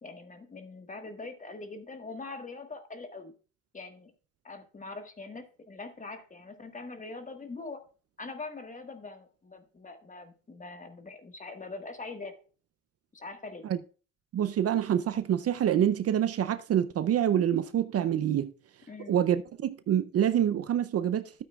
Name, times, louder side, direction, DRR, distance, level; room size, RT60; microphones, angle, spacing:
voice 1, 0.0-3.3 3.7-4.1 4.4-7.8 8.2-12.3 13.1-13.6 18.9-19.1, left 3 dB, 25° left, 1.5 m, -43 dB
voice 2, 14.3-18.5 19.1-21.4, right 10 dB, 55° right, 0.5 m, -26 dB
12.0 x 8.4 x 2.3 m
cardioid pair, 90°, 30 cm